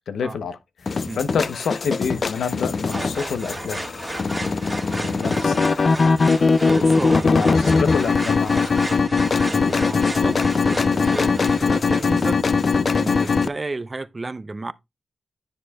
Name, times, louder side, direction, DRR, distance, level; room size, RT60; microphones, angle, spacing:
voice 1, 0.1-3.8 5.1-5.8 7.4-8.9, left 6 dB, 90° left, 0.7 m, -28 dB
sound 1, 0.9-13.5, left 4 dB, 55° left, 0.4 m, -20 dB
sound 2, 2.9-11.6, right 1 dB, 15° right, 1.5 m, -33 dB
voice 2, 4.9-5.4 6.7-7.8 9.4-12.4 12.9-14.7, right 3 dB, 35° right, 0.5 m, -33 dB
10.0 x 6.3 x 2.3 m
cardioid pair, 65°, 0 cm